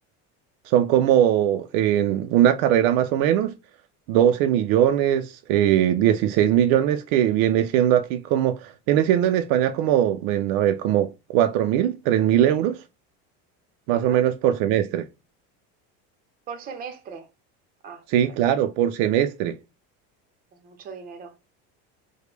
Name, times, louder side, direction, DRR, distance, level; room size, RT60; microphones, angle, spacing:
voice 1, 0.7-3.5 4.1-12.8 13.9-15.1 18.1-19.6, right 11 dB, 65° right, 0.4 m, -20 dB
voice 2, 13.9-14.2 16.5-17.3 17.8-18.4 20.5-21.4, right 6 dB, 30° right, 0.7 m, -39 dB
4.9 x 2.2 x 3.2 m
cardioid pair, 165°, 33 cm